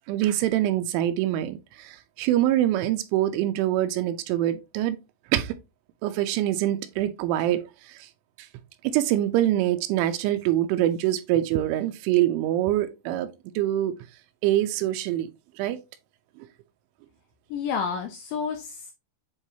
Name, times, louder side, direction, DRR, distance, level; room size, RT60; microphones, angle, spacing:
voice 1, 0.1-5.0 5.3-5.6 6.0-8.1 8.4-8.5 8.8-14.0 14.4-15.3 15.6-15.8 16.4-16.5, right 13 dB, 80° right, 3.0 m, -25 dB
voice 2, 17.5-18.9, left 6 dB, 80° left, 2.6 m, -30 dB
8.9 x 3.9 x 2.7 m
omnidirectional pair, 5.7 m